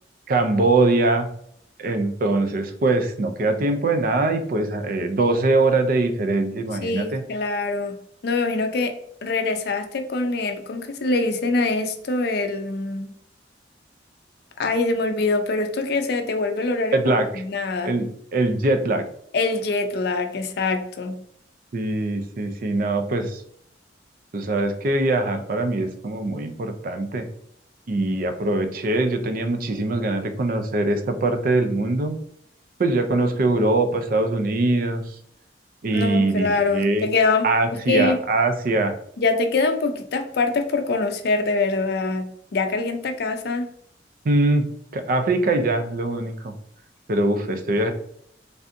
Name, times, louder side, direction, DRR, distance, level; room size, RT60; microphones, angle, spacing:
voice 1, 0.3-1.3 1.8-7.2 16.9-17.4 17.8-18.1 18.3-19.0 21.7-23.4 24.3-27.3 27.9-32.2 32.8-35.2 35.8-37.1 37.4-39.0 44.2-44.7 44.9-46.5 47.1-47.9, right 2 dB, 50° right, 7 dB, 0.4 m, -22 dB
voice 2, 6.8-13.1 14.6-17.9 19.3-21.2 35.9-37.5 37.9-38.2 39.2-43.7, left 3 dB, 60° left, 6 dB, 0.4 m, -24 dB
3.3 x 2.6 x 2.5 m, 0.65 s
head